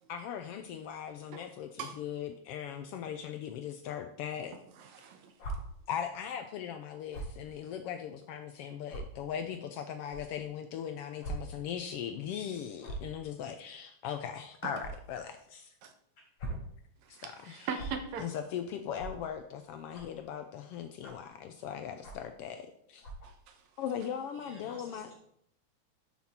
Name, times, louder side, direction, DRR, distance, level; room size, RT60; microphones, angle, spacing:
voice 1, 0.1-4.6 5.9-15.7 17.1-17.8 18.2-23.1 23.8-25.1, left 8 dB, 90° left, 1.3 m, -39 dB
voice 2, 4.8-5.3 14.6-14.7 15.8-15.9 17.1-18.3 23.2-23.6, right 6 dB, 75° right, 2.1 m, -40 dB
sound 1, 5.4-5.5 7.1-7.3 8.1-8.2 8.9-9.0 10.1-10.2 11.2-11.3 11.7-11.8 12.8-13.1 14.8-14.9 16.2-16.6 17.7-17.9 18.9-19.1 19.9-20.2 21.0-21.3 22.0-22.3 23.0-23.3, right 2 dB, 65° left, 4.5 m, -40 dB
voice 3, 24.3-25.1, equal, 25° left, 4.0 m, -52 dB
12.0 x 6.1 x 4.3 m
omnidirectional pair, 3.3 m